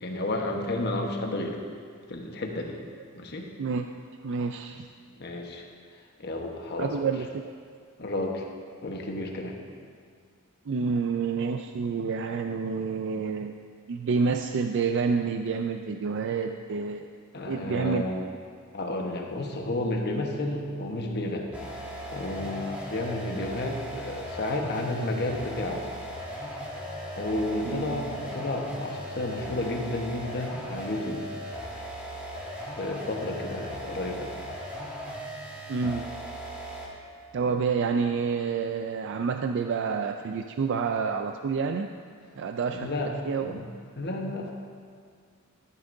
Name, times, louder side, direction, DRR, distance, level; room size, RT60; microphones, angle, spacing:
voice 1, 0.0-1.6 2.1-2.8 3.1-3.5 5.2-5.6 6.2-6.9 8.0-8.4 8.8-9.6 17.3-18.3 18.7-21.5 22.1-25.8 27.1-31.3 32.8-34.3 42.7-43.1 43.4-43.6 44.0-44.5, left 2 dB, 50° left, 1 dB, 1.2 m, -31 dB
voice 2, 4.2-4.8 6.8-7.3 10.7-13.5 13.9-17.1 17.5-18.0 27.6-28.2 35.7-36.1 37.3-41.9 42.4-42.9 43.3-43.6, right 5 dB, 60° right, 6 dB, 0.4 m, -28 dB
sound 1, 21.5-37.0, equal, 5° right, 1.7 m, -38 dB
14.0 x 11.0 x 2.7 m, 2.1 s
head